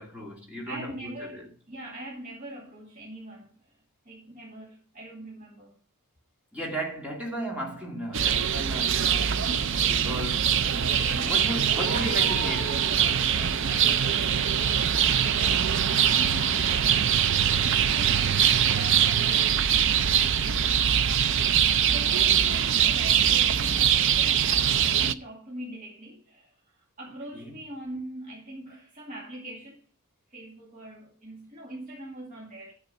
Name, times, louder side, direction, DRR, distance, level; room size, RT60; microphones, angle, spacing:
voice 1, 0.0-1.5 6.5-9.4 9.8-10.8 11.3-12.7 27.3-27.6, equal, 5° right, 2.2 m, -35 dB
voice 2, 0.6-3.7 4.1-5.7 10.6-19.2 21.7-29.8 30.3-32.7, right 1 dB, 35° right, 2.3 m, -41 dB
sound 1, 8.1-25.1, right 8 dB, 55° right, 0.5 m, -23 dB
9.7 x 7.6 x 5.4 m
head